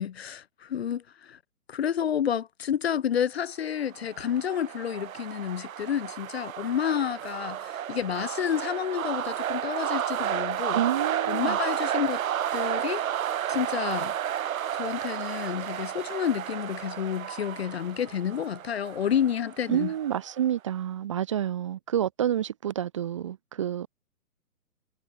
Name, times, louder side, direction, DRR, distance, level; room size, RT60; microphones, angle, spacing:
voice 1, 0.0-1.4 1.7-10.8 11.3-12.2 12.5-13.0 13.5-14.1 14.7-19.9, left 9 dB, 40° left, 0.7 m, -30 dB
sound 1, 3.8-20.4, right 10 dB, 60° right, 0.7 m, -32 dB
voice 2, 10.7-11.6 19.7-23.9, right 10 dB, 20° right, 0.7 m, -29 dB
hypercardioid pair, 150°, 46 cm